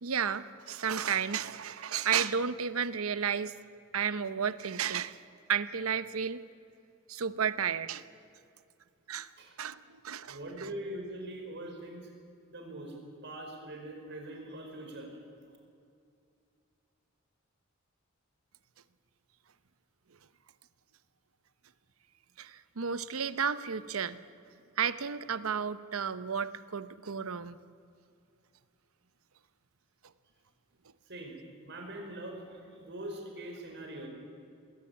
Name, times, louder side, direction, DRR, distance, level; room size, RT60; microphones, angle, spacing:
voice 1, 0.0-3.5 3.9-5.2 5.5-6.4 7.1-8.0 9.1-9.3 9.6-10.7 22.4-24.2 24.8-27.6, right 7 dB, 85° right, 14 dB, 0.8 m, -32 dB
voice 2, 10.3-12.1 12.5-12.9 13.2-15.2 31.1-31.4 31.6-34.1, right 1 dB, 55° right, 2 dB, 4.9 m, -42 dB
21.0 x 17.0 x 8.6 m, 2.4 s
head